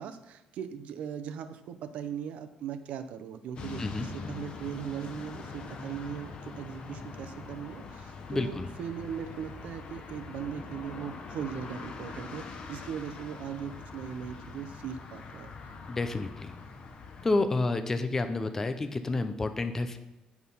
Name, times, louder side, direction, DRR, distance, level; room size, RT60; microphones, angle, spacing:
voice 1, 0.0-15.5 18.0-18.1, right 8 dB, 70° right, 8 dB, 0.6 m, -39 dB
sound 1, 3.6-17.4, left 4 dB, 45° left, 1.0 m, -43 dB
voice 2, 8.3-8.7 15.9-16.5 17.2-20.0, left 3 dB, 20° left, 8 dB, 0.5 m, -29 dB
8.4 x 5.9 x 5.5 m, 1.0 s
cardioid pair, 155°, 2 cm